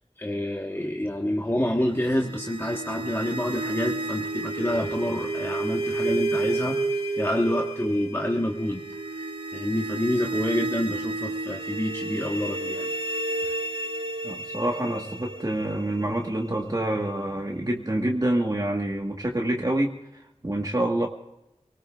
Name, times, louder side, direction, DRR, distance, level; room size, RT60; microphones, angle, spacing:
voice 1, 0.2-8.8 9.1-12.9, left 1 dB, 20° left, -1 dB, 1.4 m, -28 dB
sound 1, 1.9-16.9, right 2 dB, 55° right, 1.6 m, -31 dB
voice 2, 14.2-21.1, right 1 dB, 35° right, 0 dB, 1.5 m, -27 dB
29.5 x 19.0 x 2.5 m, 0.90 s
wide cardioid pair, 60°, 12 cm